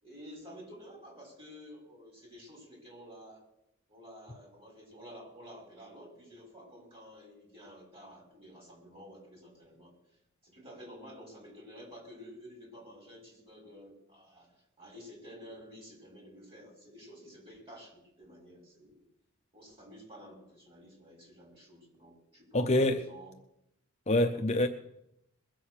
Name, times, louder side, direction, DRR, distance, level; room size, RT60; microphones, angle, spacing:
voice 1, 0.0-3.5 3.9-9.9 10.4-19.0 19.5-23.3 24.3-24.5, equal, 25° right, 5.8 m, -51 dB
voice 2, 22.5-23.0 24.1-24.7, left 1 dB, 30° left, 0.7 m, -25 dB
21.5 x 7.7 x 6.5 m
head